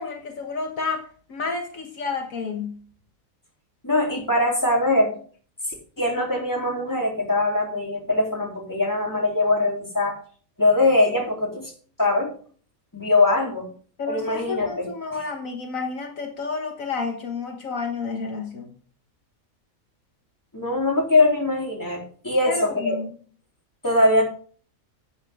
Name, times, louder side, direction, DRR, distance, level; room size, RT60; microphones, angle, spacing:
voice 1, 0.0-2.8 13.4-13.5 14.0-18.7 22.5-23.1, left 4 dB, 70° left, 3 dB, 1.8 m, -30 dB
voice 2, 3.8-5.2 6.0-10.2 10.6-11.7 12.0-12.3 12.9-13.7 14.1-14.9 20.5-23.0 23.8-24.2, left 2 dB, 15° left, -1 dB, 3.4 m, -22 dB
11.5 x 8.9 x 3.6 m, 0.44 s
omnidirectional pair, 1.5 m